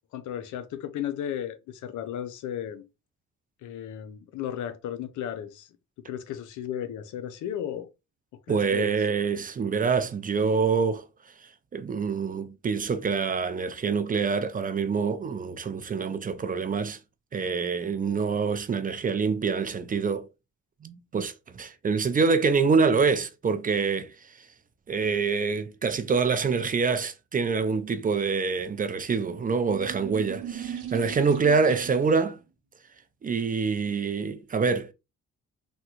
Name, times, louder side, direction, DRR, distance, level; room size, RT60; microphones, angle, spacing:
voice 1, 0.1-2.8 3.6-5.7 6.1-7.9 8.3-9.0, left 10 dB, 80° left, 0.5 m, -34 dB
voice 2, 8.5-11.0 11.4-17.0 17.3-20.3 20.8-24.5 24.9-32.4 33.2-34.9, right 5 dB, 30° right, 0.4 m, -26 dB
sound 1, 29.3-32.2, right 9 dB, 80° right, 0.7 m, -39 dB
3.5 x 2.2 x 2.9 m
cardioid pair, 90°, 30 cm